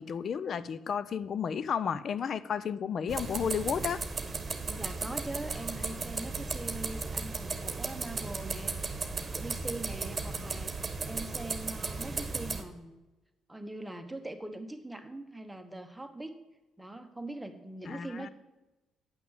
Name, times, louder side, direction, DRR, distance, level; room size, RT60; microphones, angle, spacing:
voice 1, 0.0-4.0 17.9-18.3, left 7 dB, 55° left, 0.5 m, -32 dB
sound 1, 3.1-12.6, right 4 dB, 35° right, 1.3 m, -35 dB
voice 2, 4.7-12.9 13.5-16.3 16.8-18.3, right 1 dB, 10° right, 1.1 m, -42 dB
9.4 x 6.0 x 7.2 m
supercardioid pair, 60°, 0 cm